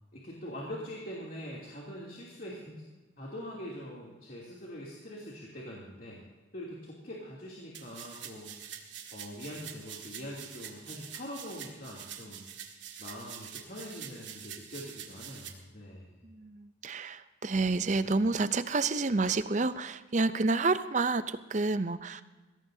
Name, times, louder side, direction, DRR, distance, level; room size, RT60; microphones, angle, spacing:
voice 1, 0.1-2.9 3.2-6.3 6.5-8.5 9.1-12.5 13.0-16.2, equal, 50° left, -5 dB, 2.9 m, -43 dB
sound 1, 7.7-15.5, right 9 dB, 80° right, 1.9 m, -45 dB
voice 2, 16.2-22.2, right 3 dB, 40° right, 13 dB, 0.6 m, -29 dB
21.0 x 17.0 x 2.8 m, 1.2 s
head